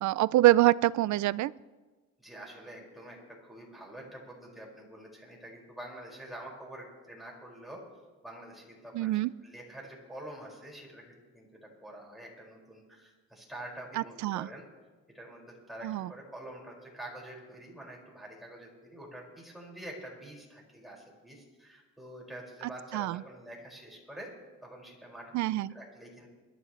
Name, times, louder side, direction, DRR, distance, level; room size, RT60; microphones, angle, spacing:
voice 1, 0.0-1.5 8.9-9.3 14.0-14.5 15.8-16.1 22.9-23.2 25.3-25.7, right 16 dB, 70° right, 21 dB, 0.4 m, -25 dB
voice 2, 2.2-7.8 8.2-9.1 9.4-11.0 11.3-14.6 15.1-24.3 24.6-25.3 25.7-26.3, right 1 dB, ahead, -3 dB, 5.7 m, -46 dB
22.5 x 13.0 x 3.3 m, 1.3 s
cardioid pair, 90°, 30 cm